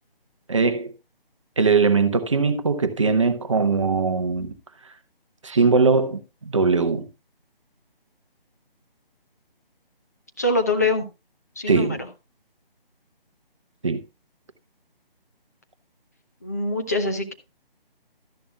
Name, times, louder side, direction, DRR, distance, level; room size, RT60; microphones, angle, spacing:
voice 1, 0.5-0.9 1.6-4.5 5.4-7.1 11.7-12.0 13.8-14.0, right 4 dB, 30° right, 0.9 m, -20 dB
voice 2, 10.4-11.1 11.6-12.1 16.4-17.3, left 2 dB, 15° left, 0.7 m, -24 dB
13.0 x 10.5 x 2.3 m
figure-of-eight pair, 155°, 29 cm